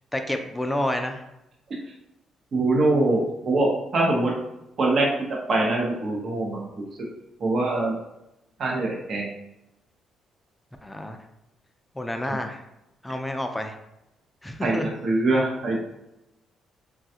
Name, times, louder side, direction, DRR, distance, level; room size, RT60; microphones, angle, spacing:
voice 1, 0.1-1.2 10.8-11.2 11.9-12.6 13.0-13.8 14.4-14.9, left 1 dB, 10° left, 5 dB, 0.3 m, -29 dB
voice 2, 2.5-4.3 4.8-5.1 5.5-6.8 7.4-7.9 8.6-9.3 12.3-12.4 14.6-15.8, right 2 dB, 55° right, -2 dB, 0.7 m, -23 dB
3.2 x 2.3 x 2.7 m, 0.88 s
cardioid pair, 90°, 0 cm